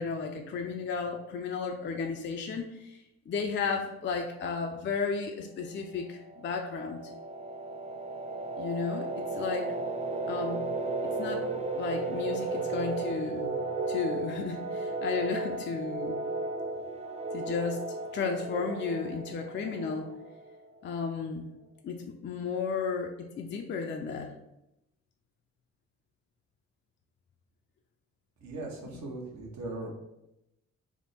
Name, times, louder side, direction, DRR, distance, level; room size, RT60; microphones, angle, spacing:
voice 1, 0.0-7.0 8.6-9.7 10.3-10.6 11.2-11.5 11.8-13.6 13.9-16.2 17.3-17.8 18.1-20.1 20.8-21.5 21.8-24.3 28.9-29.0, left 5 dB, 40° left, 3 dB, 0.4 m, -33 dB
sound 1, 6.1-20.7, right 3 dB, 20° right, 0.4 m, -35 dB
voice 2, 28.4-29.9, right 2 dB, 65° right, 0 dB, 1.0 m, -39 dB
3.5 x 2.1 x 4.0 m, 0.88 s
cardioid pair, 90°, 30 cm